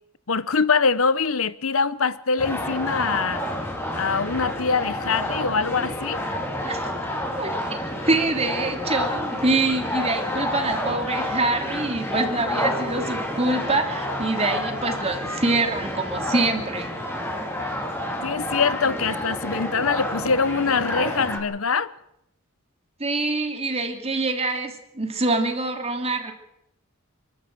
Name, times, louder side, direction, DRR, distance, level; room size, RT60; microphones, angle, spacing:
voice 1, 0.3-3.4 3.9-6.3 18.2-21.9, left 5 dB, 75° left, 1.0 m, -23 dB
sound 1, 2.4-21.4, left 1 dB, 10° left, 4.5 m, -29 dB
voice 2, 7.3-17.0 23.0-26.3, right 2 dB, 30° right, 2.9 m, -25 dB
29.5 x 12.5 x 7.8 m
head